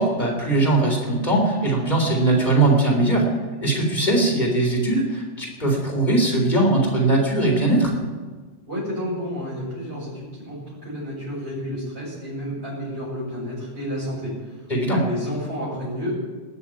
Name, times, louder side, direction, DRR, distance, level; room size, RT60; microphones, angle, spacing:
voice 1, 0.0-3.3 3.6-7.9 14.7-15.0, right 2 dB, 40° left, 0 dB, 3.9 m, -20 dB
voice 2, 8.7-16.1, equal, 65° right, -10 dB, 6.0 m, -31 dB
19.5 x 7.0 x 9.1 m, 1.4 s
omnidirectional pair, 1.2 m